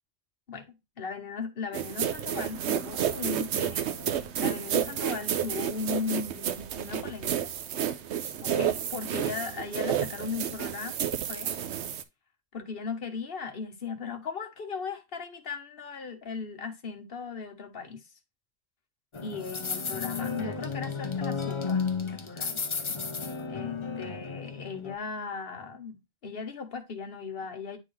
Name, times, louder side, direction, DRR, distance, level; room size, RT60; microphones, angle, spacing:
voice 1, 1.0-7.5 8.4-11.5 12.5-18.0 19.2-21.8 22.1-22.6 23.5-27.8, left 5 dB, 50° left, 1.4 m, -37 dB
sound 1, 1.7-12.0, right 9 dB, 65° right, 0.9 m, -31 dB
sound 2, 19.1-24.9, left 5 dB, 35° left, 0.5 m, -33 dB
9.9 x 3.8 x 3.1 m
omnidirectional pair, 1.3 m